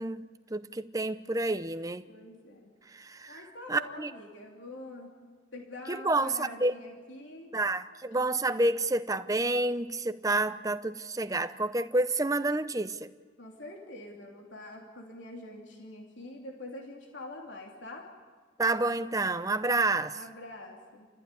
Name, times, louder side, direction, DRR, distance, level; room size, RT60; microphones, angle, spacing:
voice 1, 0.0-2.0 2.9-4.1 5.9-6.7 7.5-13.1 18.6-20.2, right 2 dB, 20° right, 0.7 m, -29 dB
voice 2, 2.1-2.8 3.3-5.1 5.5-7.5 13.4-18.1 20.1-21.1, left 2 dB, 75° left, 3.1 m, -45 dB
29.5 x 15.0 x 9.9 m
head